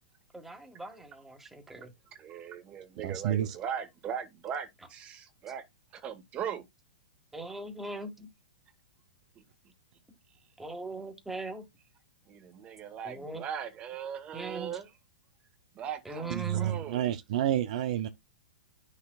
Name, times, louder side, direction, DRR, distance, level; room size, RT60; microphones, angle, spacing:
voice 1, 0.3-1.9 7.3-8.3 10.6-11.7 13.0-13.4 14.3-14.8 16.0-16.8, right 3 dB, 5° right, 1.7 m, -40 dB
voice 2, 2.2-5.6 5.9-6.6 12.3-14.9 15.7-17.0, right 8 dB, 30° right, 1.6 m, -39 dB
voice 3, 3.0-3.6 16.3-18.1, right 11 dB, 60° right, 0.7 m, -29 dB
9.4 x 6.5 x 2.3 m
hypercardioid pair, 130°, 4 cm